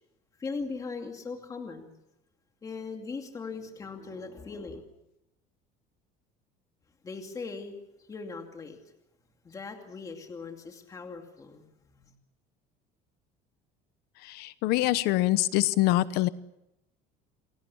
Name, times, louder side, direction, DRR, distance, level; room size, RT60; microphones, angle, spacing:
voice 1, 0.4-1.9 2.6-4.8 7.0-7.8 8.1-8.8 9.4-12.1, left 4 dB, 20° left, 3 dB, 2.6 m, -39 dB
voice 2, 14.2-16.3, left 16 dB, 65° left, 15 dB, 0.9 m, -25 dB
29.5 x 21.0 x 7.1 m, 0.85 s
cardioid pair, 170°, 18 cm